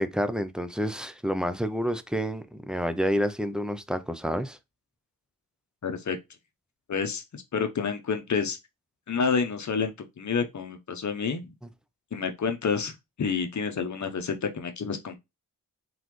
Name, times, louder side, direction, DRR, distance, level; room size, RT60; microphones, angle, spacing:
voice 1, 0.0-4.6, equal, ahead, 0.4 m, -29 dB
voice 2, 5.8-6.2 6.9-8.6 9.1-11.4 12.1-12.9 13.2-15.2, left 5 dB, 55° left, 0.8 m, -29 dB
3.9 x 3.8 x 3.0 m
wide cardioid pair, 165°, 34 cm